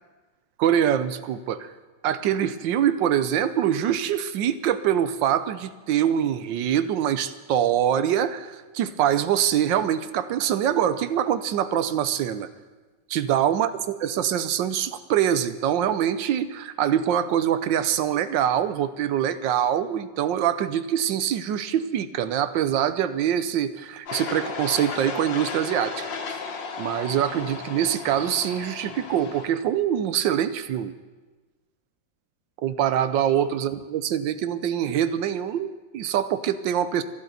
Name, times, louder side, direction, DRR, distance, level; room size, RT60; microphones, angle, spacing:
voice 1, 0.6-1.7 2.0-12.5 13.1-26.0 26.8-30.9 32.6-37.0, right 10 dB, 85° right, 12 dB, 1.5 m, -24 dB
sound 1, 24.1-29.5, left 5 dB, 85° left, 2.1 m, -34 dB
12.0 x 12.0 x 7.9 m, 1.2 s
omnidirectional pair, 1.9 m